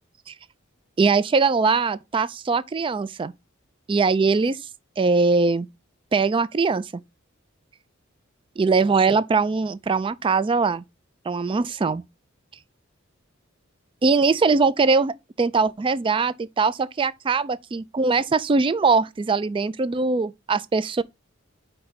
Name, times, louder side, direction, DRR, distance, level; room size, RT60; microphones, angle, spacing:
voice 1, 1.0-3.3 3.9-4.6 5.0-5.7 6.1-6.9 8.6-10.8 11.3-12.0 14.0-21.0, right 4 dB, 25° right, 0.3 m, -21 dB
5.2 x 3.4 x 5.6 m
head